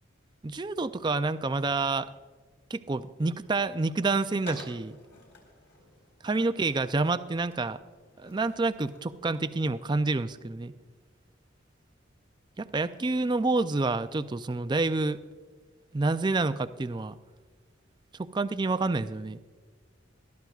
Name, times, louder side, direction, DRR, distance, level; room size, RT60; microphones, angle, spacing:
voice 1, 0.4-2.1 2.7-5.0 6.2-7.8 8.2-10.7 12.6-15.2 15.9-17.2 18.2-19.4, right 3 dB, 20° right, 12 dB, 0.4 m, -28 dB
Skateboard, 4.4-9.9, left 3 dB, 60° left, 4.1 m, -52 dB
21.0 x 13.0 x 2.4 m, 1.4 s
head